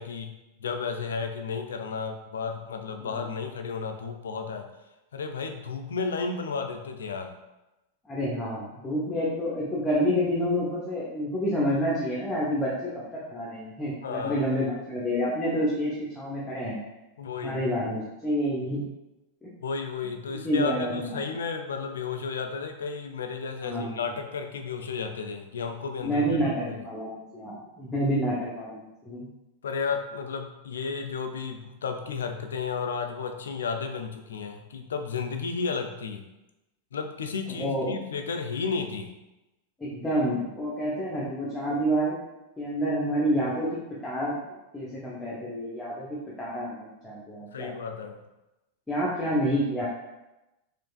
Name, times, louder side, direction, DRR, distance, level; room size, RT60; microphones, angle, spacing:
voice 1, 0.0-4.7 5.1-7.3 14.0-14.5 17.2-17.6 19.6-26.9 29.6-36.3 36.9-39.1 47.5-48.2, left 5 dB, 65° left, 5 dB, 0.3 m, -33 dB
voice 2, 8.1-12.9 13.3-16.8 17.4-18.8 19.4-19.5 20.4-21.2 23.6-24.0 26.0-29.3 37.6-37.9 39.8-42.1 42.6-43.7 44.0-44.4 44.7-47.7 48.9-49.8, equal, 10° left, -7 dB, 0.7 m, -28 dB
4.4 x 2.5 x 2.3 m, 0.99 s
figure-of-eight pair, 90°, 0 cm